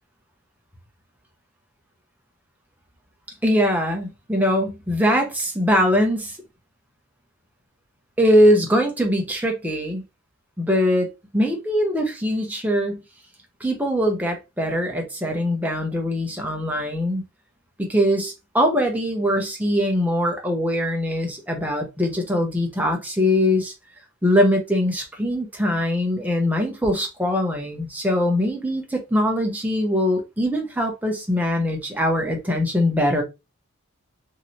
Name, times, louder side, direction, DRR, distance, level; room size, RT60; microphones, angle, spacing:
voice 1, 3.4-6.4 8.2-10.0 10.6-13.0 13.6-17.2 17.8-23.7 24.2-33.2, equal, 5° right, 0.7 m, -22 dB
3.1 x 2.7 x 2.6 m
head